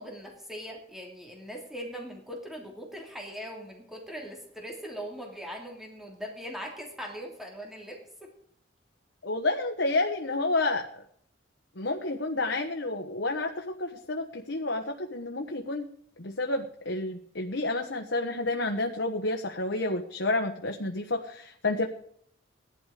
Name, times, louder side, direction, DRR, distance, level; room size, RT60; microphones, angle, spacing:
voice 1, 0.0-8.0, equal, ahead, 0 dB, 3.0 m, -40 dB
voice 2, 9.2-10.9 11.8-15.9 16.2-21.9, left 2 dB, 70° left, 3 dB, 1.3 m, -30 dB
17.5 x 11.5 x 5.1 m, 0.67 s
head